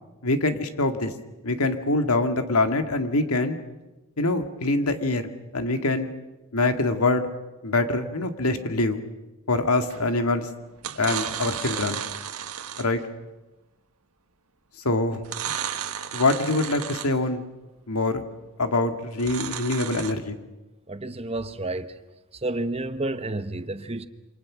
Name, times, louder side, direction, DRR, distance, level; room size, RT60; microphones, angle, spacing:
voice 1, 0.2-1.1 1.4-3.6 4.2-6.1 6.5-7.3 7.6-9.0 9.5-10.5 11.0-12.0 12.8-13.0 14.8-15.2 16.1-17.4 17.9-18.2 18.6-20.4, left 2 dB, 90° left, 2.0 m, -24 dB
sound 1, 9.9-10.2 10.8-13.0 15.2-17.3 19.1-20.1, right 9 dB, 90° right, 1.6 m, -33 dB
voice 2, 20.9-21.9 22.4-24.1, right 2 dB, 25° right, 1.0 m, -30 dB
28.5 x 25.5 x 6.2 m
head